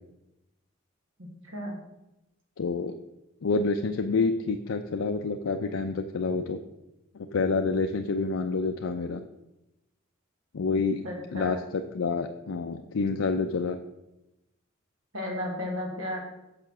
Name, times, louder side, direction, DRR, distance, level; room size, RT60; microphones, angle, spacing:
voice 1, 1.2-1.8 10.7-11.6 15.1-16.2, left 1 dB, 80° right, 0 dB, 1.9 m, -34 dB
voice 2, 2.6-2.9 3.4-6.6 7.1-9.2 10.5-11.0 11.3-13.8, left 4 dB, 85° left, 5 dB, 0.5 m, -28 dB
6.8 x 5.7 x 6.1 m, 0.93 s
head